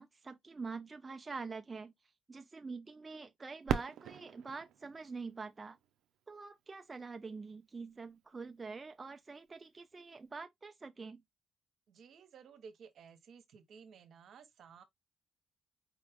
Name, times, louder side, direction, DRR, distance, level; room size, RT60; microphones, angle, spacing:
voice 1, 0.0-1.9 2.3-5.8 6.3-11.2, right 4 dB, 30° right, 0.4 m, -45 dB
Fireworks, 3.7-6.4 7.1-7.2 7.9-8.3 10.2-10.4, right 9 dB, 80° right, 0.5 m, -40 dB
voice 2, 11.9-14.8, right 6 dB, 65° right, 1.0 m, -55 dB
5.1 x 2.4 x 3.5 m
cardioid pair, 90°, 0 cm